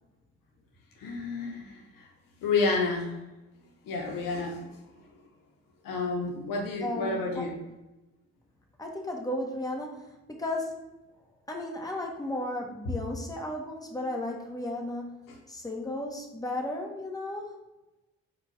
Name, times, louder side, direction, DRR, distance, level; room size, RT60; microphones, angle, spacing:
voice 1, 1.0-2.1 2.4-3.2 3.9-4.7 5.8-7.6, left 3 dB, 75° left, 0 dB, 0.9 m, -30 dB
voice 2, 6.8-7.5 8.8-10.9 11.5-17.5, left 1 dB, 10° left, 0 dB, 1.2 m, -34 dB
4.4 x 2.5 x 4.5 m, 1.0 s
hypercardioid pair, 40°, 33 cm